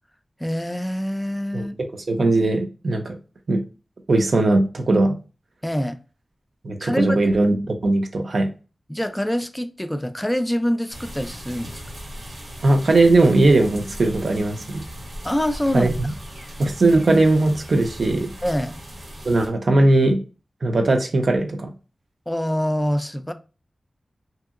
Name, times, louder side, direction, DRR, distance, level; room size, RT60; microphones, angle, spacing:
voice 1, 0.4-1.8 5.6-6.0 6.8-7.2 8.9-11.8 15.2-15.9 18.4-18.8 22.3-23.3, equal, 10° left, 0.3 m, -25 dB
voice 2, 2.1-3.2 3.5-3.6 4.1-5.1 6.6-8.5 12.6-14.8 15.7-16.1 16.6-18.3 19.2-20.2 20.6-21.7, right 2 dB, 65° right, 0.5 m, -19 dB
sound 1, 10.9-19.5, equal, 90° right, 0.9 m, -37 dB
2.8 x 2.7 x 2.4 m
wide cardioid pair, 90°, 0 cm